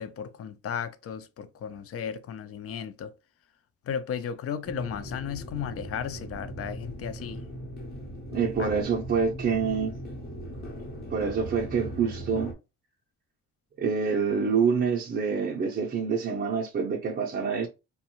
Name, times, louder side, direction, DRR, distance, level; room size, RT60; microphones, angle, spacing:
voice 1, 0.0-3.1 3.9-7.4 8.6-8.7, left 8 dB, 50° left, 0.4 m, -35 dB
sound 1, 4.6-12.5, right 1 dB, 30° left, 0.9 m, -39 dB
voice 2, 8.3-9.9 11.1-12.5 13.8-17.7, right 5 dB, 35° right, 0.6 m, -26 dB
2.6 x 2.2 x 2.9 m
cardioid pair, 90°, 30 cm